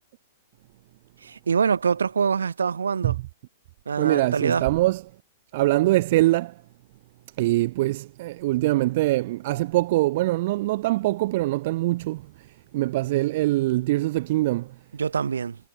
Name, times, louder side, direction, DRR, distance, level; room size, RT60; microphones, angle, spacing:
voice 1, 1.2-3.2 3.9-4.6 15.0-15.6, right 6 dB, 70° right, 1.5 m, -24 dB
voice 2, 4.0-5.0 5.5-6.5 7.4-12.2 12.7-14.7, right 18 dB, 45° right, 0.8 m, -23 dB
figure-of-eight pair, 105°, 0 cm